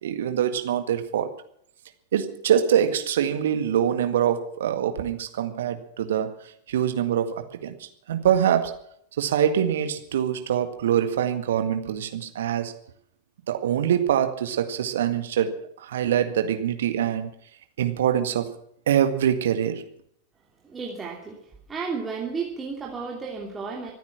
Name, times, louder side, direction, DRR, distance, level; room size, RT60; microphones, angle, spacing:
voice 1, 0.0-1.3 2.1-6.4 6.7-8.8 9.2-12.7 13.5-17.3 17.8-18.5 18.9-19.8, right 9 dB, 60° right, 1.9 m, -24 dB
voice 2, 20.6-21.4 21.7-23.9, right 5 dB, 15° right, 3.0 m, -32 dB
25.5 x 9.5 x 6.0 m
figure-of-eight pair, 90°, 0 cm